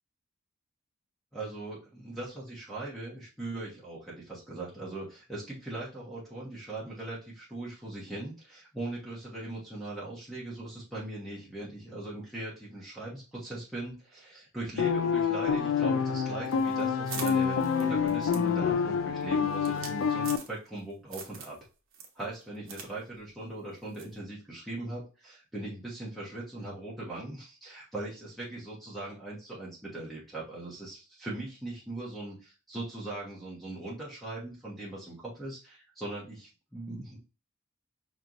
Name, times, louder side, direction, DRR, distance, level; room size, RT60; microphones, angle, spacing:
voice 1, 1.3-21.6 22.1-37.2, right 2 dB, ahead, -6 dB, 1.2 m, -40 dB
sound 1, 14.8-20.4, left 6 dB, 65° left, 0.4 m, -27 dB
sound 2, 16.5-20.8 21.1-21.6 21.9-22.9 23.2-23.3 23.9-24.2, right 6 dB, 60° right, 1.0 m, -43 dB
5.4 x 3.0 x 2.5 m, 0.33 s
head